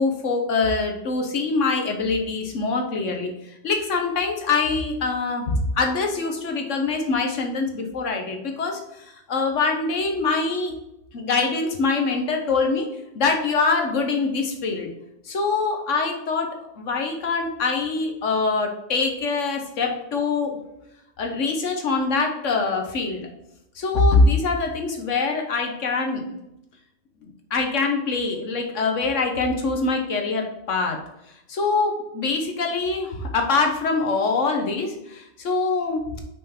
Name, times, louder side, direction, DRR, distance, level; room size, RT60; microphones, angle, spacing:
voice 1, 0.0-10.7 11.1-12.9 13.1-14.9 15.2-20.5 21.2-23.3 23.7-26.4 27.2-31.0 31.5-36.0, left 3 dB, 90° left, 3 dB, 1.5 m, -24 dB
6.1 x 5.6 x 3.6 m, 0.86 s
omnidirectional pair, 1.2 m